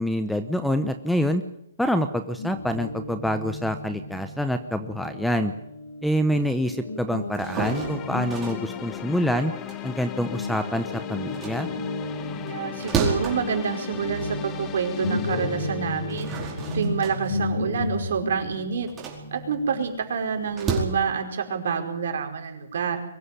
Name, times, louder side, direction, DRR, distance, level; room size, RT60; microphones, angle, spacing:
voice 1, 0.0-1.4 1.8-5.5 6.0-9.5 9.8-11.7, equal, ahead, 9 dB, 0.9 m, -26 dB
Guitar, 2.4-10.1 10.4-20.8, left 2 dB, 70° left, 6.8 m, -34 dB
sound 1, 7.2-10.8 11.2-14.7 15.1-15.2 15.9-20.8, right 4 dB, 15° right, 4.8 m, -33 dB
sound 2, 7.6-17.6, left 11 dB, 20° left, 1.2 m, -38 dB
voice 2, 12.5-18.9 19.3-23.0, right 6 dB, 60° right, 4 dB, 4.9 m, -28 dB
23.0 x 15.0 x 10.0 m, 0.77 s
hypercardioid pair, 160°, 0 cm